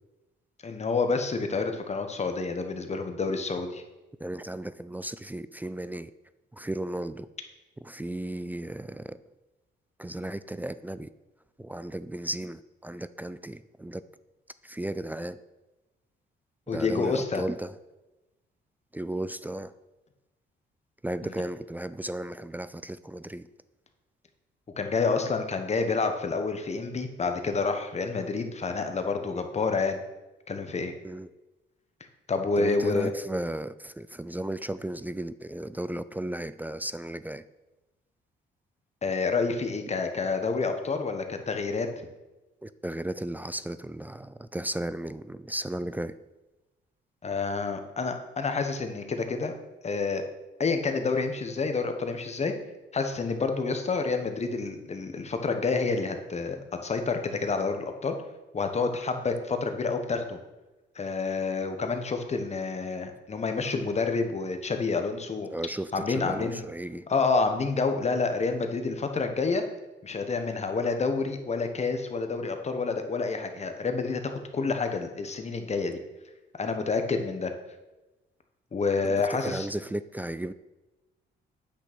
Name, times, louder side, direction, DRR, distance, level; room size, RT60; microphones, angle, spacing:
voice 1, 0.6-3.8 16.7-17.4 24.8-30.0 30.5-30.9 32.3-33.1 39.0-41.9 47.2-49.5 49.8-50.2 50.6-52.5 52.9-58.2 58.5-60.4 60.9-65.5 65.9-66.6 67.1-69.6 70.0-76.0 76.6-77.5 78.7-79.7, left 4 dB, 35° left, 6 dB, 1.2 m, -28 dB
voice 2, 4.2-6.1 6.5-7.3 7.8-9.2 10.0-11.1 11.6-14.0 14.6-15.4 16.7-17.7 18.9-19.7 21.0-23.5 31.0-31.3 32.6-37.4 42.6-46.2 65.5-67.1 79.0-80.5, right 1 dB, 10° right, 14 dB, 0.3 m, -35 dB
8.2 x 6.3 x 6.1 m, 1.1 s
cardioid pair, 90°, 20 cm